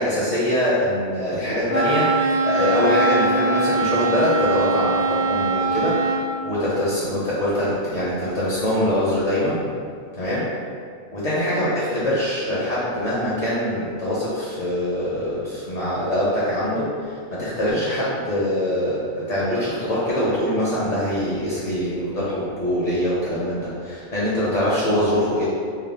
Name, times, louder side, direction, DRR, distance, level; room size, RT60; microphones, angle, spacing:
voice 1, 0.0-6.0 6.4-9.6 10.2-10.5 11.1-25.4, left 1 dB, 45° left, -9 dB, 0.8 m, -23 dB
Wind instrument woodwind instrument, 1.7-6.3, right 3 dB, 80° left, 1.3 m, -22 dB
3.3 x 2.1 x 3.7 m, 2.2 s
omnidirectional pair, 1.1 m